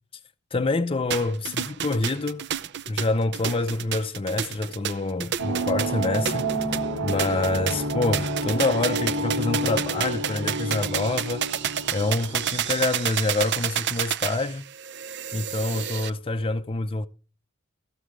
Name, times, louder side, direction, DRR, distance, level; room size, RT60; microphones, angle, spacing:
voice 1, 0.5-2.4 2.9-6.5 7.0-11.5 11.9-14.6 15.3-17.1, left 2 dB, 25° left, 0.5 m, -26 dB
sound 1, 1.1-16.1, right 9 dB, 55° right, 0.7 m, -30 dB
sound 2, 5.4-12.8, right 1 dB, 75° right, 2.1 m, -29 dB
14.5 x 6.9 x 4.9 m
head